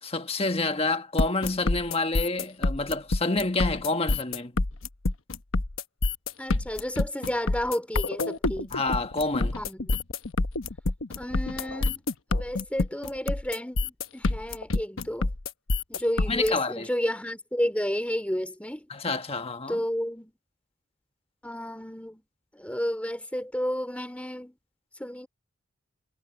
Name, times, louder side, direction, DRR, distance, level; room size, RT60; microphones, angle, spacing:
voice 1, 0.0-4.5 8.7-9.6 16.3-16.9 18.9-19.8, left 3 dB, 30° left, 1.3 m, -28 dB
sound 1, 1.2-16.5, left 2 dB, 70° left, 1.1 m, -27 dB
voice 2, 6.4-8.8 9.6-10.0 11.2-12.0 12.3-15.3 15.9-18.9 19.7-20.3 21.4-22.2 22.5-24.5 25.0-25.3, equal, 5° left, 2.8 m, -31 dB
head